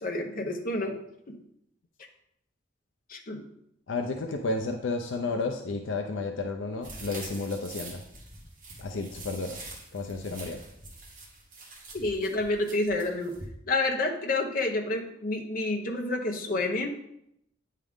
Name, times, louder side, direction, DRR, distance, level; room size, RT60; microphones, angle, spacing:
voice 1, 0.0-1.0 1.3-1.4 3.1-3.4 11.9-13.3 13.7-16.9, left 2 dB, 45° left, 3 dB, 0.8 m, -29 dB
voice 2, 3.9-8.0 8.8-9.6 9.9-10.6, left 3 dB, 75° left, 4 dB, 0.5 m, -32 dB
sound 1, 6.8-13.5, right 2 dB, 45° right, 1.3 m, -45 dB
8.9 x 3.8 x 3.5 m, 0.76 s
head